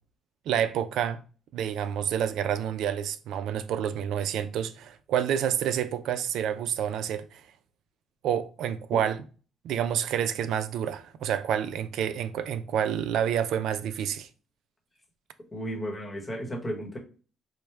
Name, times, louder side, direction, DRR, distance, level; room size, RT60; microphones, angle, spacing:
voice 1, 0.5-1.2 1.5-7.4 8.2-9.2 9.6-14.3, right 9 dB, 75° right, 0.3 m, -28 dB
voice 2, 15.5-17.0, equal, 20° left, 1.0 m, -34 dB
4.4 x 2.1 x 3.2 m
cardioid pair, 135°, 0 cm